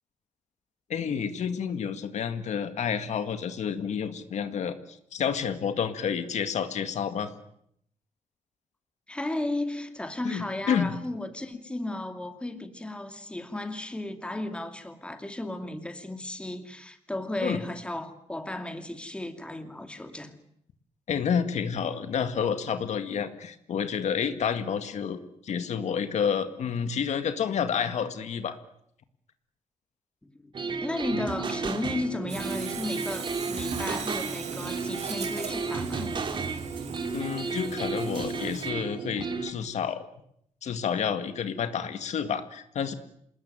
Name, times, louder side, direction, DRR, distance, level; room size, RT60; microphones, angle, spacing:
voice 1, 0.9-7.3 10.2-10.9 17.4-17.6 21.1-28.6 37.1-40.1 40.6-42.9, left 7 dB, 70° left, 2.0 m, -29 dB
voice 2, 9.1-20.3 30.2-30.5 30.8-36.1, left 1 dB, 10° left, 2.5 m, -34 dB
sound 1, 30.5-39.5, right 4 dB, 40° right, 2.9 m, -33 dB
Sawing, 32.3-38.7, right 6 dB, 70° right, 4.5 m, -40 dB
27.5 x 20.0 x 9.1 m
wide cardioid pair, 155°, 12 cm